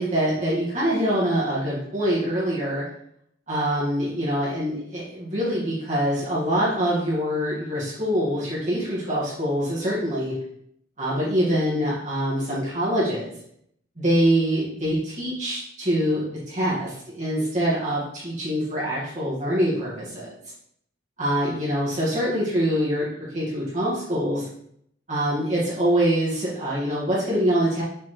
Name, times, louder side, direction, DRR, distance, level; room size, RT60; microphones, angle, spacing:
voice 1, 0.0-2.8 3.5-10.3 11.0-13.4 14.0-20.4 21.2-24.5 25.1-27.8, equal, 35° right, -8 dB, 2.1 m, -24 dB
6.9 x 4.2 x 3.3 m, 0.70 s
head